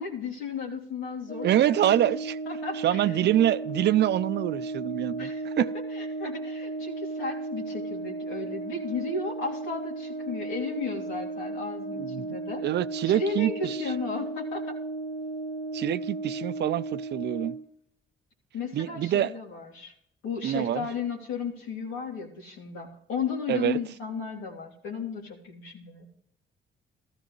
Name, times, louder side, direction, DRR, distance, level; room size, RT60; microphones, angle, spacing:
voice 1, 0.0-2.1 2.5-3.2 5.2-12.6 13.0-14.8 18.5-19.9 20.2-26.1, left 5 dB, 85° left, 3.0 m, -34 dB
Brass instrument, 1.3-17.7, right 2 dB, 50° left, 2.2 m, -35 dB
voice 2, 1.4-2.4 2.8-5.7 12.0-12.2 12.6-13.8 15.7-17.6 18.7-19.3 20.4-20.9 23.5-23.8, right 12 dB, 60° right, 0.5 m, -25 dB
14.5 x 14.5 x 3.1 m
cardioid pair, 90°, 20 cm